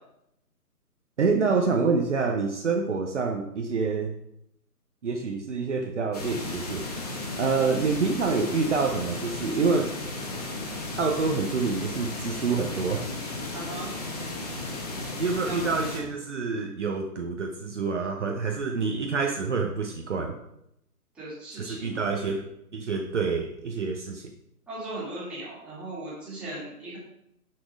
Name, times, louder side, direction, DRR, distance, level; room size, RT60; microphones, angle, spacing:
voice 1, 1.2-4.1 5.0-6.8 7.4-9.9 11.0-13.1 15.2-20.3 21.6-22.4 22.7-24.3, right 4 dB, 50° right, 2 dB, 0.8 m, -27 dB
sound 1, 6.1-16.0, left 2 dB, 25° left, 1.2 m, -35 dB
voice 2, 13.5-13.9 15.4-15.6 21.1-22.0 24.7-27.0, right 2 dB, ahead, -11 dB, 2.2 m, -38 dB
6.4 x 6.0 x 4.8 m, 0.79 s
figure-of-eight pair, 155°, 47 cm